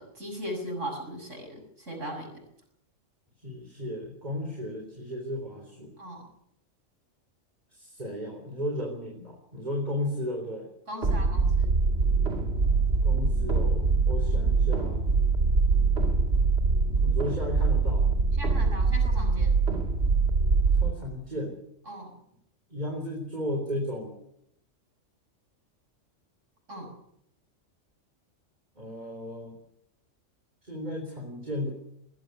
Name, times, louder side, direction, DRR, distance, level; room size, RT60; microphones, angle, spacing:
voice 1, 0.0-2.4 6.0-6.2 10.9-11.8 18.4-19.5 21.9-22.1 26.7-26.9, equal, 70° right, 2 dB, 7.0 m, -38 dB
voice 2, 3.4-5.9 7.7-10.7 13.0-15.0 17.0-18.1 20.8-21.6 22.7-24.1 28.8-29.6 30.6-31.7, left 1 dB, 35° right, 1 dB, 4.1 m, -34 dB
sound 1, 11.0-20.9, right 4 dB, 55° right, 2.1 m, -24 dB
21.0 x 15.0 x 9.5 m, 0.77 s
omnidirectional pair, 1.3 m